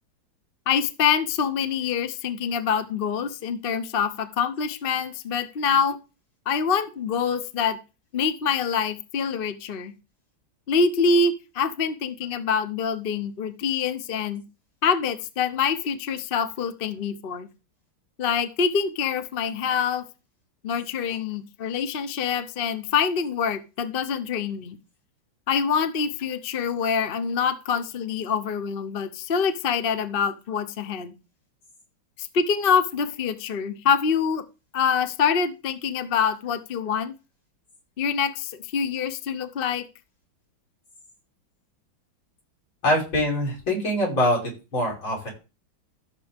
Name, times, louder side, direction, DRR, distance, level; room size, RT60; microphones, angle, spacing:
voice 1, 0.7-6.0 6.5-7.8 8.1-9.9 10.7-14.4 14.8-17.5 18.2-20.0 20.6-24.8 25.5-31.1 32.2-34.4 34.7-37.1 38.0-39.9, left 6 dB, 50° left, 11 dB, 0.7 m, -25 dB
voice 2, 42.8-44.4 44.7-45.3, left 1 dB, 70° left, -2 dB, 6.1 m, -23 dB
14.5 x 6.9 x 3.5 m, 0.31 s
omnidirectional pair, 2.2 m